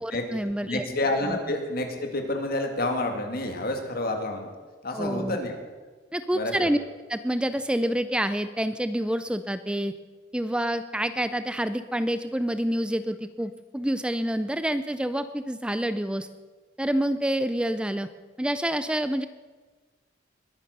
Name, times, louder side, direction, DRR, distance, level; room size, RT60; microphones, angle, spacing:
voice 1, 0.0-0.8 1.2-1.4 4.9-5.4 6.1-6.8 7.1-9.9 10.3-16.3 16.8-18.1 18.4-19.3, right 1 dB, 5° right, 11 dB, 0.5 m, -27 dB
voice 2, 0.6-4.5 4.8-5.6 6.3-6.7, left 2 dB, 55° left, 4 dB, 2.4 m, -29 dB
21.0 x 9.6 x 6.7 m, 1.4 s
head